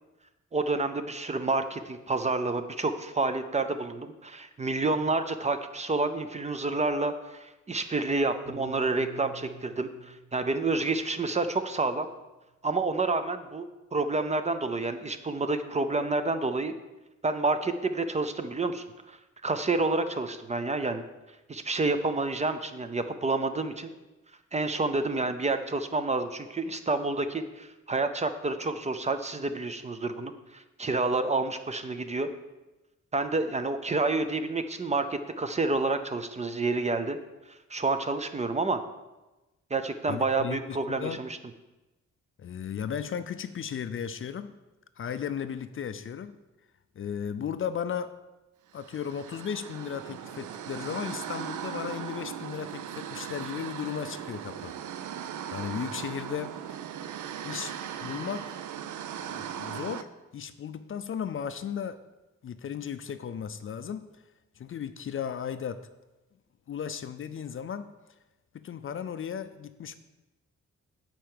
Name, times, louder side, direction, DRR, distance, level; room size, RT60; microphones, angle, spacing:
voice 1, 0.5-12.1 12.6-16.7 17.2-19.2 19.4-21.0 21.5-23.9 24.5-32.3 33.1-37.2 37.7-38.8 39.7-41.4, right 3 dB, 25° right, 9 dB, 0.5 m, -29 dB
Piano, 8.5-12.9, right 2 dB, 40° right, 2.4 m, -49 dB
voice 2, 40.1-41.2 42.4-44.5 45.0-46.3 47.0-48.2 48.7-54.7 55.5-56.6 57.4-57.8 58.0-58.5 59.2-62.0 62.4-64.1 64.6-65.9 66.7-67.9 68.5-69.9, left 8 dB, 45° left, 11 dB, 0.4 m, -35 dB
sound 1, 48.7-60.0, right 9 dB, 80° right, 0.6 m, -38 dB
10.0 x 4.5 x 7.7 m, 1.1 s
wide cardioid pair, 175°, 29 cm